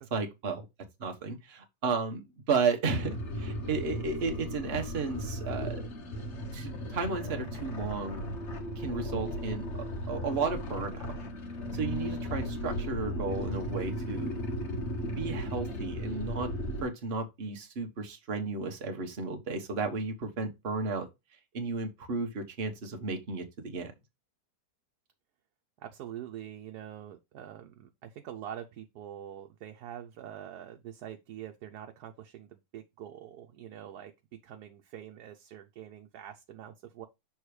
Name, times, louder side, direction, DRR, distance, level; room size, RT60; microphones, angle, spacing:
voice 1, 0.1-0.7 1.0-5.8 6.5-8.2 8.8-11.1 11.7-14.4 15.2-16.5 16.8-21.1 21.5-23.9, right 4 dB, 45° right, 1.3 m, -33 dB
sound 1, 2.9-16.8, equal, 50° left, 1.2 m, -36 dB
voice 2, 25.8-37.1, right 10 dB, 85° right, 1.3 m, -45 dB
6.3 x 3.5 x 4.8 m
omnidirectional pair, 1.6 m